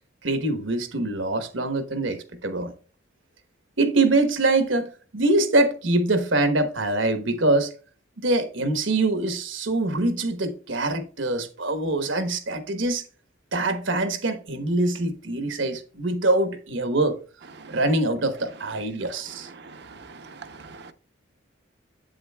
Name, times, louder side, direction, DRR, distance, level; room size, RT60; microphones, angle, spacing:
voice 1, 0.2-2.7 3.8-7.7 8.2-13.0 13.5-17.2 17.7-19.5, right 2 dB, 70° right, 1.1 m, -24 dB
voice 2, 19.7-20.3 20.6-20.9, right 4 dB, 55° right, 0.7 m, -44 dB
8.2 x 7.7 x 2.3 m
head